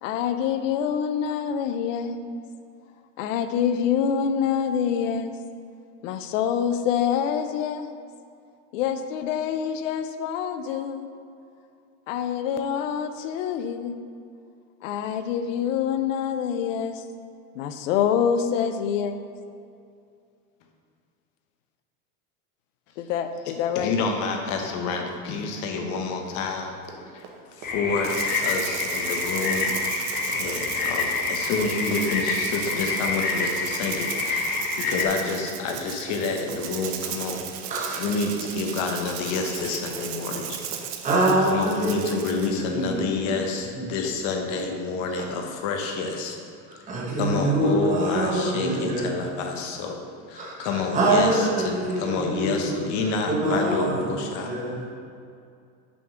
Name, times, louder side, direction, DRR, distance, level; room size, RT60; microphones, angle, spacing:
voice 1, 0.0-2.3 3.2-5.4 6.0-7.9 8.7-11.1 12.1-14.0 14.8-17.1 17.5-19.2 23.0-24.0, left 8 dB, 85° left, 9 dB, 0.7 m, -26 dB
voice 2, 23.7-26.8 27.1-27.2 27.5-28.2 28.4-29.7 30.3-37.4 38.0-40.7 41.4-46.4 46.8-46.9 47.2-50.0 50.3-54.5, left 4 dB, 50° left, 2 dB, 1.0 m, -28 dB
Run, 26.7-43.3 43.6-43.7 44.0-44.3 44.6-44.7 45.2-45.3, right 4 dB, 65° right, 1.1 m, -44 dB
sound 1, 27.6-35.1, left 4 dB, 25° left, 0.6 m, -27 dB
Rattle (instrument), 28.0-42.6, right 9 dB, 50° right, 0.6 m, -36 dB
voice 3, 37.1-38.0 41.0-43.4 43.7-43.9 45.1-45.2 46.7-49.2 50.3-54.9, right 2 dB, 20° right, -4 dB, 1.2 m, -26 dB
6.0 x 3.7 x 6.1 m, 2.4 s
supercardioid pair, 145°, 37 cm